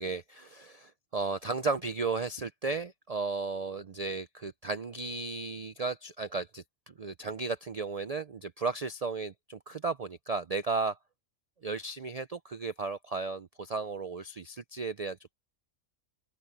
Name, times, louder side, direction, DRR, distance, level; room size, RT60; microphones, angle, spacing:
voice 1, 0.0-11.0 11.6-15.3, right 4 dB, 55° right, 0.4 m, -34 dB
open air
omnidirectional pair, 1.4 m